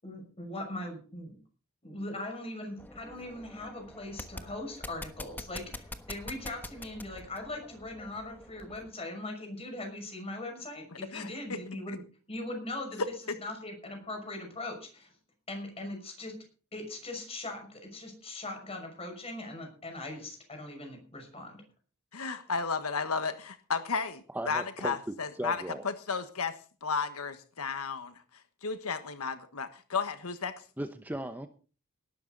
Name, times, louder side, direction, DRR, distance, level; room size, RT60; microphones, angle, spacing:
voice 1, 0.0-1.4 1.8-12.0 12.3-13.0 13.4-15.1 15.5-16.4 16.7-21.6, left 1 dB, 30° left, 6.1 m, -40 dB
sound 1, 2.8-8.9, left 1 dB, 10° left, 1.2 m, -46 dB
voice 2, 11.1-11.6 22.1-27.3 27.6-28.1 28.6-30.5, left 5 dB, 85° left, 1.4 m, -33 dB
voice 3, 24.3-25.0 25.4-25.8 30.8-31.5, right 1 dB, 10° right, 0.9 m, -36 dB
18.5 x 12.5 x 4.0 m
head